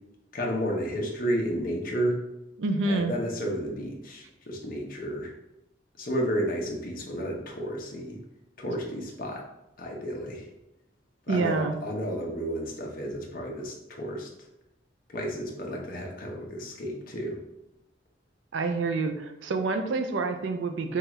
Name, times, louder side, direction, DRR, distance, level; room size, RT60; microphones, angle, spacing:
voice 1, 0.3-2.2 2.8-5.3 6.0-8.2 8.6-9.4 9.8-10.5 11.3-14.3 15.1-17.4, equal, 50° left, 0 dB, 0.8 m, -32 dB
voice 2, 2.6-3.1 11.3-11.8 18.5-21.0, right 3 dB, 85° right, 7 dB, 0.4 m, -27 dB
4.7 x 2.4 x 3.0 m, 0.88 s
head